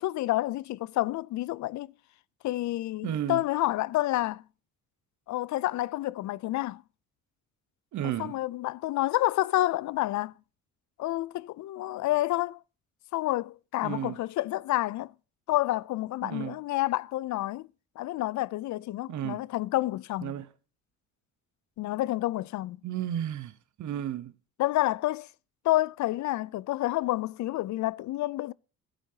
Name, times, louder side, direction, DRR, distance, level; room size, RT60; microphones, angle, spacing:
voice 1, 0.0-1.9 2.4-4.4 5.3-6.8 8.0-10.3 11.0-12.6 13.1-15.1 15.5-17.7 18.0-20.3 21.8-22.8 24.6-25.3 25.6-28.5, left 16 dB, 70° left, 0.5 m, -29 dB
voice 2, 3.0-3.4 7.9-8.4 13.8-14.2 16.2-16.6 19.1-19.4 20.2-20.5 22.8-24.3, right 11 dB, 70° right, 1.0 m, -33 dB
15.0 x 8.3 x 2.8 m
cardioid pair, 90°, 30 cm